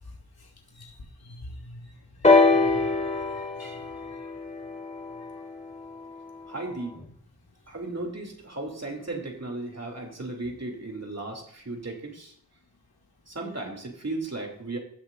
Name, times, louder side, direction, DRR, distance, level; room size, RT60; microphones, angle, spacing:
voice 1, 1.2-1.9 2.2-4.3, left 1 dB, 70° left, 0 dB, 2.8 m, -45 dB
sound 1, 2.2-6.1 7.0-7.1, left 3 dB, 15° left, 1.8 m, -24 dB
voice 2, 6.5-7.0 7.7-12.3 13.3-14.8, right 2 dB, 40° right, 1 dB, 2.8 m, -35 dB
18.0 x 6.4 x 2.6 m, 0.63 s
cardioid pair, 40°, 39 cm